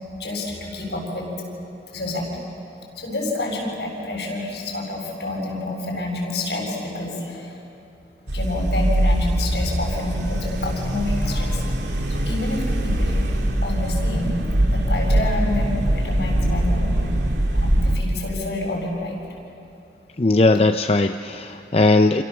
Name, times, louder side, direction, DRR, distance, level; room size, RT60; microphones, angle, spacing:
voice 1, 0.2-1.3 1.9-2.3 3.0-7.6 8.3-11.7 12.1-13.3 13.6-14.4 14.7-17.1 17.5-19.2, left 2 dB, 70° left, -1 dB, 7.5 m, -28 dB
sound 1, 8.3-18.0, right 1 dB, 85° right, 2.4 m, -22 dB
voice 2, 20.2-22.2, left 2 dB, 35° left, 6 dB, 0.6 m, -18 dB
28.0 x 28.0 x 7.2 m, 2.7 s
head